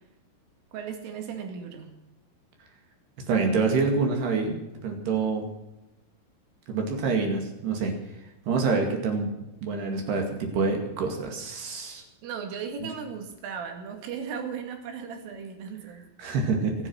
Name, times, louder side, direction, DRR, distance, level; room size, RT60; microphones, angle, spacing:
voice 1, 0.7-1.9 12.2-16.1, right 6 dB, 75° right, 5 dB, 4.6 m, -36 dB
voice 2, 3.3-5.5 6.7-7.9 8.5-9.3 9.6-12.0 16.2-16.7, right 4 dB, 60° right, 3 dB, 3.9 m, -26 dB
25.0 x 8.6 x 6.3 m, 0.96 s
omnidirectional pair, 5.9 m